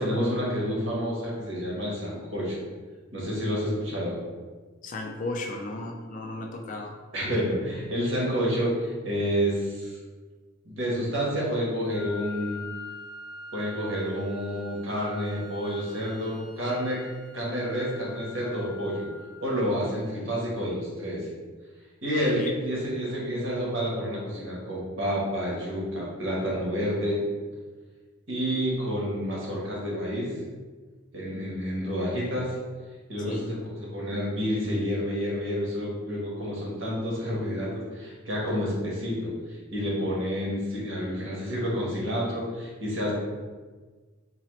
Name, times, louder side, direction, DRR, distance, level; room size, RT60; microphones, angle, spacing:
voice 1, 0.0-2.6 3.1-4.2 7.1-10.0 10.6-12.6 13.5-17.1 17.3-19.1 19.4-21.3 22.0-27.2 28.3-30.3 31.1-32.5 33.1-43.1, equal, 60° right, -5 dB, 1.2 m, -29 dB
voice 2, 4.8-6.9 22.3-22.5 33.2-33.5, left 2 dB, 35° left, 2 dB, 0.3 m, -34 dB
Wind instrument woodwind instrument, 11.9-19.9, left 2 dB, 85° right, 0.8 m, -44 dB
3.9 x 2.8 x 3.1 m, 1.4 s
head